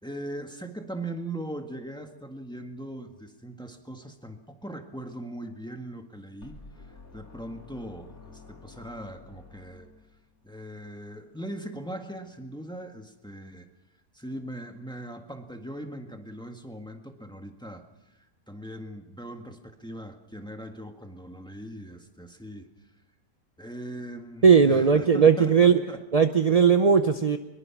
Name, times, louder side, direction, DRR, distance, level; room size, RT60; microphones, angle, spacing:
voice 1, 0.0-9.9 10.4-13.7 14.1-17.8 18.1-22.7 23.6-26.0, right 1 dB, 5° left, 4 dB, 1.7 m, -40 dB
sound 1, 6.4-10.4, left 4 dB, 60° left, 3.4 m, -50 dB
voice 2, 24.4-25.8 26.1-27.4, right 6 dB, 35° right, 8 dB, 0.6 m, -18 dB
23.5 x 22.0 x 6.0 m, 1.0 s
omnidirectional pair, 1.7 m